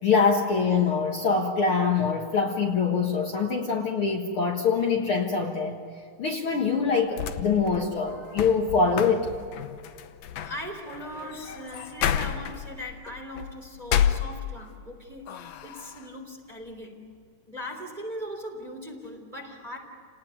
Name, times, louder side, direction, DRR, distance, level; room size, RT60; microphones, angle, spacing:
voice 1, 0.0-5.8 6.2-9.3, left 5 dB, 50° left, 0 dB, 2.2 m, -24 dB
sound 1, 6.9-14.9 15.3-16.1, left 9 dB, 65° left, 2.0 m, -31 dB
voice 2, 10.3-17.0 17.5-19.8, equal, 15° right, 2 dB, 3.0 m, -39 dB
30.0 x 19.0 x 9.5 m, 2.2 s
omnidirectional pair, 3.6 m